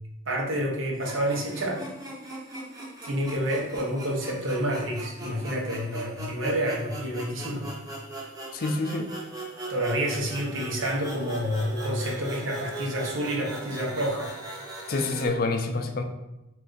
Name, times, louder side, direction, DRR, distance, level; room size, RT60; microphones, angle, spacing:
voice 1, 0.3-1.9 3.0-7.8 9.7-14.3, equal, 80° right, 0 dB, 0.8 m, -29 dB
sound 1, 0.9-15.3, right 1 dB, 20° right, 0.6 m, -40 dB
voice 2, 8.5-9.1 14.9-16.0, left 3 dB, 45° left, 5 dB, 0.4 m, -27 dB
3.3 x 2.5 x 3.8 m, 0.95 s
head